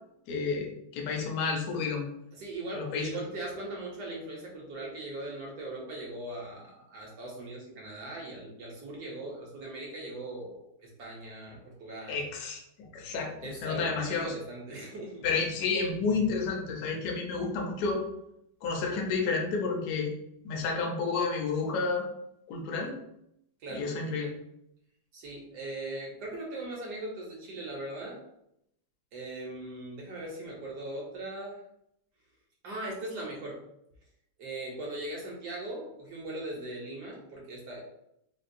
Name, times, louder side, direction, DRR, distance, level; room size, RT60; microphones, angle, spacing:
voice 1, 0.3-2.1 2.7-3.1 12.1-13.3 13.6-14.3 15.2-18.0 18.6-20.1 20.4-22.0 22.5-23.0 23.7-24.3, left 4 dB, 65° left, 0 dB, 1.0 m, -30 dB
voice 2, 2.3-12.2 13.4-15.3 23.6-23.9 25.1-28.2 29.1-31.6 32.6-33.6 34.4-37.8, right 2 dB, 65° right, -2 dB, 1.2 m, -39 dB
4.4 x 2.2 x 2.5 m, 0.78 s
omnidirectional pair, 2.1 m